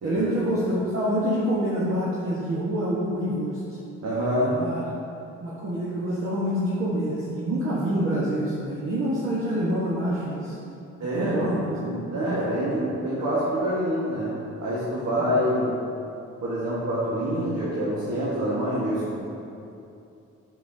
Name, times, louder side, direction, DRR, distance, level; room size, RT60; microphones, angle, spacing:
voice 1, 0.0-3.8 4.4-4.8 5.4-10.6 11.1-11.8 12.2-12.3 15.2-15.4, equal, 45° right, -8 dB, 1.4 m, -26 dB
voice 2, 4.0-4.6 11.0-15.8 16.4-19.2, equal, 65° right, -9 dB, 1.6 m, -26 dB
8.2 x 6.9 x 2.8 m, 2.7 s
cardioid pair, 90°, 30 cm